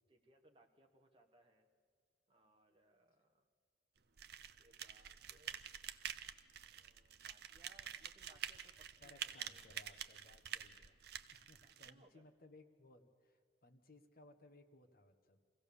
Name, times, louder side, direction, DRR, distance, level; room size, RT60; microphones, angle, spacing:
voice 1, 0.1-1.7 2.3-3.4 4.3-5.6 6.6-9.6 11.5-12.2, right 1 dB, 25° right, 2 dB, 1.2 m, -70 dB
sound 1, 4.2-11.9, right 9 dB, 55° right, 0.7 m, -48 dB
voice 2, 9.0-11.0 11.3-15.4, left 2 dB, 50° left, 5 dB, 1.5 m, -63 dB
24.0 x 16.5 x 7.0 m, 2.1 s
head